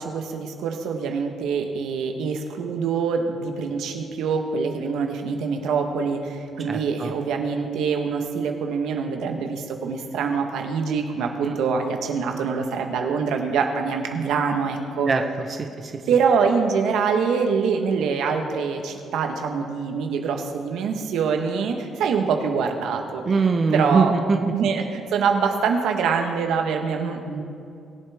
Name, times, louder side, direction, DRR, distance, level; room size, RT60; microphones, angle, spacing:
voice 1, 0.0-15.1 16.1-23.2 23.7-24.1 24.5-24.8 25.1-27.4, right 5 dB, 85° right, 4 dB, 1.2 m, -24 dB
voice 2, 6.7-7.1 11.4-11.6 15.1-16.0 23.3-24.5, right 4 dB, 40° right, 4 dB, 0.9 m, -23 dB
21.5 x 7.6 x 3.5 m, 2.5 s
cardioid pair, 90°, 0 cm